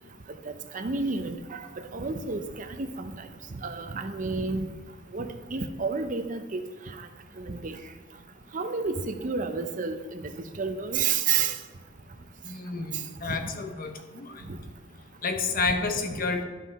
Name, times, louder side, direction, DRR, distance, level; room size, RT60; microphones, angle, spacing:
voice 1, 0.4-3.3 3.6-4.7 5.1-6.6 6.9-7.1 7.4-7.8 8.5-10.3 10.6-11.6 13.3-13.4, right 5 dB, 40° right, 8 dB, 0.6 m, -30 dB
voice 2, 12.4-14.4 15.2-16.4, left 4 dB, 45° left, 6 dB, 0.8 m, -30 dB
11.5 x 5.6 x 4.1 m, 1.3 s
head